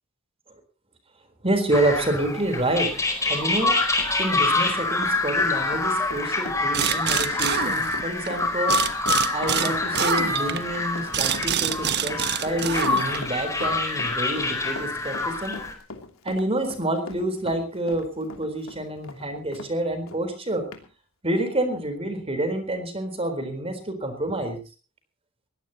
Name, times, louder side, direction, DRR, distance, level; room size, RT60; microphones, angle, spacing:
voice 1, 1.4-3.0 3.3-3.8 4.2-9.0 9.3-15.6 16.2-20.7 21.2-24.6, right 1 dB, 30° right, 8 dB, 4.1 m, -28 dB
sound 1, 1.7-15.7, left 3 dB, 15° left, 4.5 m, -26 dB
Run, 3.1-19.7 20.1-20.2 20.7-20.8, left 3 dB, 75° left, 3.0 m, -41 dB
sound 2, 6.7-8.3 8.7-13.4, right 8 dB, 50° right, 1.2 m, -26 dB
21.5 x 17.0 x 3.0 m, 0.34 s
head